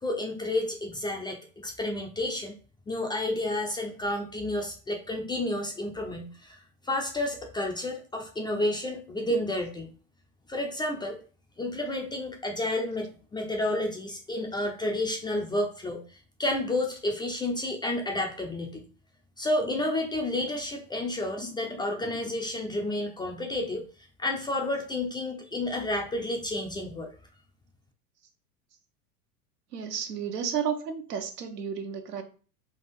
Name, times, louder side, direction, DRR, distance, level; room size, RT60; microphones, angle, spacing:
voice 1, 0.0-2.5 2.9-9.9 10.5-11.2 11.6-18.8 19.4-23.8 24.2-27.1, left 1 dB, 10° left, 0.4 m, -31 dB
voice 2, 29.7-32.2, right 7 dB, 80° right, 1.0 m, -32 dB
3.7 x 2.5 x 4.2 m
hypercardioid pair, 95°, 47 cm